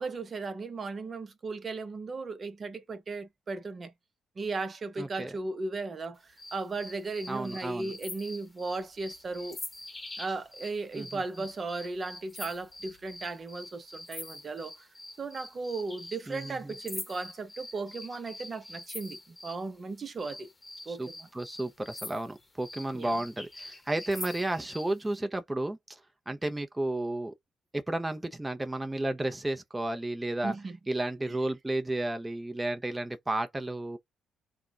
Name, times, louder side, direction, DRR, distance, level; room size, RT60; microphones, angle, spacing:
voice 1, 0.0-3.9 4.4-9.6 10.2-14.9 15.2-20.5 20.9-21.3 22.9-23.2 30.4-30.8 31.3-31.4, right 3 dB, 40° right, 0.9 m, -36 dB
voice 2, 5.0-5.3 7.3-7.9 10.9-11.2 16.3-16.7 20.9-26.0 26.3-27.3 27.7-30.5 30.9-34.0, right 1 dB, 15° right, 0.7 m, -33 dB
sound 1, 6.4-19.6 20.2-24.9, left 2 dB, 25° left, 1.0 m, -45 dB
3.6 x 2.3 x 2.4 m
supercardioid pair, 65°, 0 cm